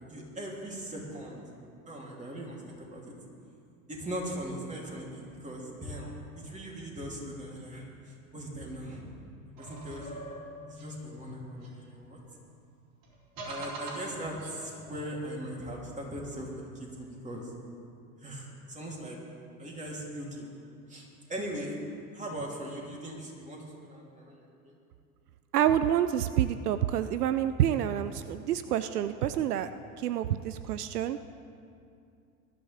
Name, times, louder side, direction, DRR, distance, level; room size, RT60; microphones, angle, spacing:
voice 1, 0.1-1.4 1.9-3.1 3.9-9.1 9.6-10.2 10.7-12.2 13.4-17.5 18.2-19.2 19.6-20.5 20.9-21.8 22.1-24.8, right 1 dB, 15° right, -3 dB, 3.4 m, -40 dB
sound 1, 9.6-12.3 13.0-15.0, right 1 dB, 50° right, 3.8 m, -44 dB
voice 2, 25.5-29.7 30.0-31.2, right 10 dB, 80° right, 12 dB, 0.6 m, -28 dB
20.0 x 12.0 x 3.6 m, 2.5 s
hypercardioid pair, 85°, 45 cm